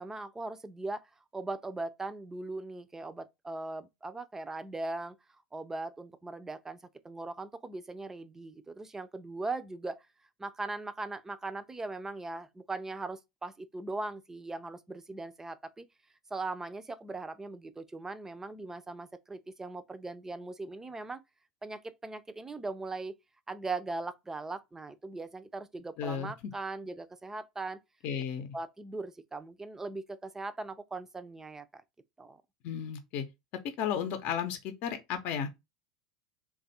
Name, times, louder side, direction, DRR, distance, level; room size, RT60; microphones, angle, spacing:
voice 1, 0.0-5.2 5.5-10.0 10.4-15.9 16.3-21.2 21.6-23.1 23.5-27.8 28.5-31.8 32.2-32.4, right 3 dB, 15° right, 0.5 m, -39 dB
voice 2, 26.0-26.3 28.0-28.5 32.6-33.2 33.8-35.5, left 8 dB, 55° left, 0.7 m, -33 dB
3.3 x 2.4 x 4.1 m
hypercardioid pair, 95°, 3 cm